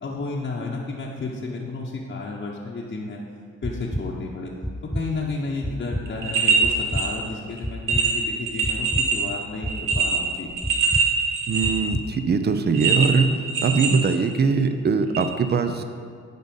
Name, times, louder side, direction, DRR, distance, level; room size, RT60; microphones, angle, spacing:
voice 1, 0.0-3.2 3.6-4.5 4.8-10.5, left 3 dB, 35° left, -4 dB, 0.9 m, -32 dB
sound 1, 3.6-4.0 4.6-5.0 5.6-6.0 6.6-7.0 7.6-8.0 8.6-9.0 9.6-10.0 10.6-11.0 11.6-12.0, equal, 5° left, 0.3 m, -28 dB
sound 2, 6.1-7.1 7.5-7.6 7.9-9.2 9.7-11.9 12.7-14.5 15.1-15.2, right 5 dB, 80° right, 1.3 m, -23 dB
voice 2, 11.5-13.3 13.6-15.8, right 5 dB, 35° right, 8 dB, 0.6 m, -21 dB
10.5 x 4.0 x 5.3 m, 2.1 s
cardioid pair, 90°, 30 cm